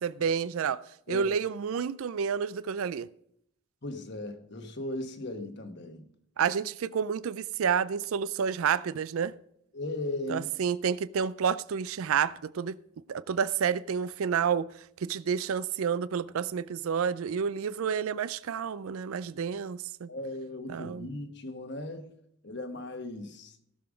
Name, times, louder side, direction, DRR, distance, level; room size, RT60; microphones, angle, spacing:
voice 1, 0.0-0.8 1.1-3.1 6.4-9.3 10.3-12.8 13.1-14.7 15.0-20.1 20.7-21.1, right 7 dB, 75° right, 0.4 m, -29 dB
voice 2, 3.8-6.1 9.7-10.5 20.1-22.1 22.4-23.6, left 2 dB, 50° left, 1.3 m, -37 dB
16.5 x 6.9 x 5.1 m
head